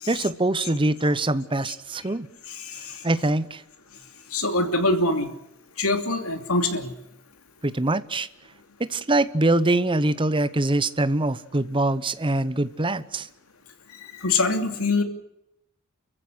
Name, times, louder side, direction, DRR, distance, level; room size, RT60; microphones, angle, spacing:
voice 1, 0.1-2.3 3.0-3.6 7.6-8.3 8.8-13.3, right 2 dB, 20° right, 14 dB, 0.9 m, -23 dB
voice 2, 2.5-3.0 4.3-5.3 5.8-6.9 14.1-15.0, left 2 dB, 70° left, 6 dB, 2.9 m, -24 dB
30.0 x 15.0 x 8.1 m, 0.81 s
head